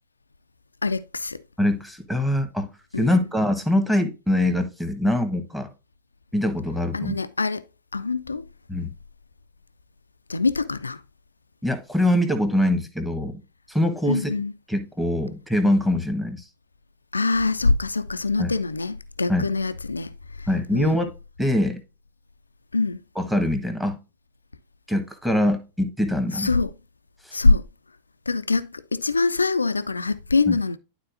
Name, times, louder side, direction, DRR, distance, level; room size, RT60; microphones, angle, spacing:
voice 1, 0.8-1.4 2.9-3.2 6.9-7.6 7.9-8.5 10.3-11.0 14.1-14.5 17.1-21.1 22.7-23.0 26.3-26.7 27.3-27.7 28.3-30.8, left 3 dB, 80° left, 0.4 m, -24 dB
voice 2, 1.6-2.7 3.0-5.7 6.3-7.2 8.7-8.9 11.6-13.4 13.7-14.3 14.7-16.4 18.4-18.5 19.3-19.5 20.5-21.1 21.4-21.8 23.2-24.0 24.9-26.5 27.3-27.4 30.5-30.6, left 1 dB, 5° right, 1.5 m, -23 dB
11.5 x 4.1 x 2.6 m
figure-of-eight pair, 90°, 0 cm